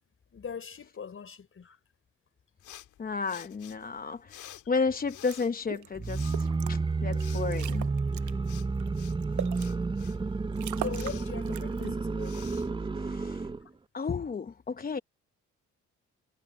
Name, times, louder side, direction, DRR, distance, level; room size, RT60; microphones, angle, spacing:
voice 1, 0.3-1.8 4.6-4.7 7.1-7.3 10.8-12.5, left 6 dB, 45° left, 5.2 m, -41 dB
sound 1, 2.6-13.6, left 12 dB, 80° left, 2.5 m, -52 dB
voice 2, 3.0-7.9 11.8-11.9 12.6-12.7 12.9-13.5 13.9-15.0, left 4 dB, 30° left, 0.9 m, -33 dB
sound 2, 5.3-5.4 5.7-5.9 6.3-6.7 7.1-7.2 7.5-8.3 8.8-9.7 10.2-10.3 10.5-11.2 11.5-11.9, right 13 dB, 75° right, 0.9 m, -38 dB
sound 3, 6.0-13.6, right 4 dB, 15° right, 0.6 m, -31 dB
cardioid pair, 90°, 30 cm